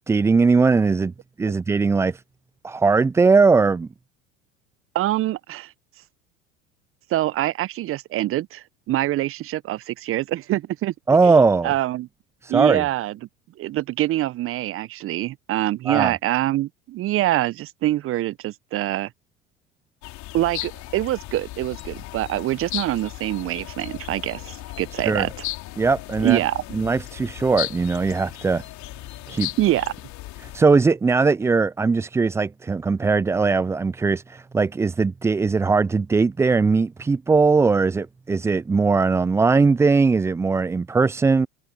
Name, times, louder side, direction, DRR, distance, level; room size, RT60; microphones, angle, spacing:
voice 1, 0.1-1.1 1.4-2.2 2.6-3.9 11.1-11.7 12.4-12.9 15.9-16.1 25.0-25.3 25.8-26.4 26.7-28.6 29.3-29.5 30.4-41.5, right 4 dB, 10° right, 0.4 m, -19 dB
voice 2, 4.9-5.7 7.1-10.9 11.6-12.1 12.5-13.2 13.6-19.1 20.3-25.3 26.2-26.6 29.6-29.9, right 15 dB, 35° right, 0.9 m, -25 dB
sound 1, 20.0-30.6, left 18 dB, 50° left, 4.6 m, -36 dB
hypercardioid pair, 80°, 37 cm